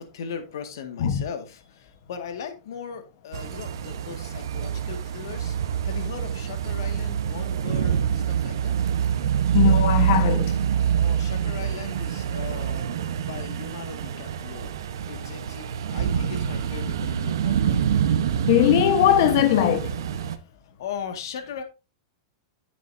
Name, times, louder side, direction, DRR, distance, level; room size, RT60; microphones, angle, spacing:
voice 1, 0.0-8.8 10.9-12.9 13.3-14.7 15.1-18.0 20.2-20.3 20.8-21.6, left 7 dB, 70° left, 1.9 m, -38 dB
sound 1, 3.3-20.4, right 8 dB, 85° right, 1.0 m, -26 dB
voice 2, 9.5-10.5 18.5-19.9, left 11 dB, 50° left, 1.1 m, -20 dB
10.0 x 8.4 x 2.7 m
supercardioid pair, 170°, 2 cm